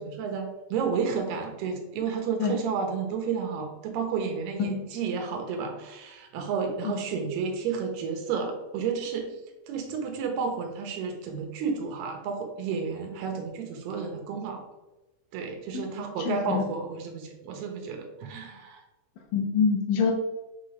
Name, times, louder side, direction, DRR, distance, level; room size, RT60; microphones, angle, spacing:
voice 1, 0.0-9.3 9.7-14.6 15.3-18.8, right 5 dB, 70° right, 3 dB, 2.9 m, -31 dB
voice 2, 16.3-16.6 19.3-20.1, left 6 dB, 70° left, 1 dB, 2.2 m, -25 dB
7.0 x 3.9 x 4.8 m, 1.1 s
omnidirectional pair, 5.2 m